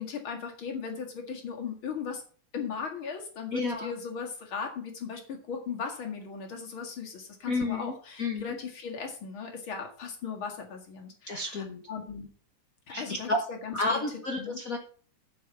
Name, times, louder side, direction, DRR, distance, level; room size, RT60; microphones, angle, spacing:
voice 1, 0.0-2.2 2.5-12.3 12.9-14.0 14.4-14.6, left 6 dB, 45° left, 2 dB, 2.5 m, -37 dB
voice 2, 3.5-3.9 7.5-8.6 11.3-11.8 12.9-13.4 13.7-14.8, left 2 dB, 70° left, 3 dB, 0.8 m, -31 dB
9.5 x 7.0 x 5.8 m, 0.41 s
omnidirectional pair, 3.3 m